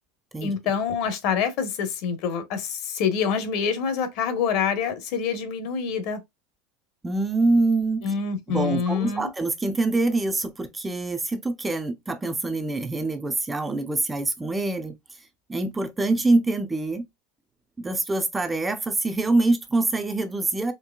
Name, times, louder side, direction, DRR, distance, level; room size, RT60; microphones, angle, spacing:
voice 1, 0.4-6.2 8.0-9.3, left 6 dB, 55° left, 1.1 m, -26 dB
voice 2, 7.0-8.1 8.5-15.0 15.5-17.1 17.8-20.7, right 2 dB, 10° right, 0.5 m, -25 dB
4.5 x 3.2 x 2.3 m
supercardioid pair, 145°, 0 cm